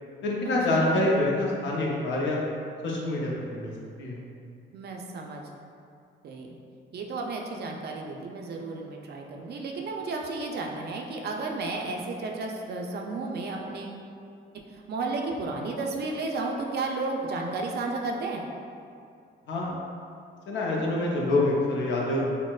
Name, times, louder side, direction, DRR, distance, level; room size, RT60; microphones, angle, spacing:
voice 1, 0.2-2.4 2.8-3.7 4.0-4.2 19.5-19.8 20.5-22.2, left 2 dB, 70° left, -3 dB, 0.6 m, -26 dB
voice 2, 4.7-5.4 6.2-6.6 6.9-14.0 14.7-18.5, right 3 dB, 55° right, 1 dB, 0.4 m, -33 dB
4.2 x 2.0 x 2.3 m, 2.4 s
cardioid pair, 90°, 20 cm